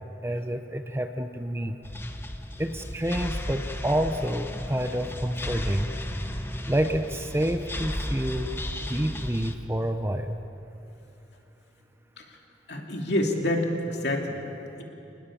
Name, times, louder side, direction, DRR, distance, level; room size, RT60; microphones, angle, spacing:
voice 1, 0.2-1.8 2.6-5.9 6.7-8.5 8.9-10.4, right 1 dB, 15° right, 7 dB, 0.8 m, -28 dB
sound 1, 1.8-9.6, left 1 dB, 10° left, 1.0 m, -34 dB
voice 2, 12.7-14.4, left 1 dB, 65° left, 1 dB, 2.8 m, -27 dB
27.0 x 20.0 x 7.2 m, 2.9 s
head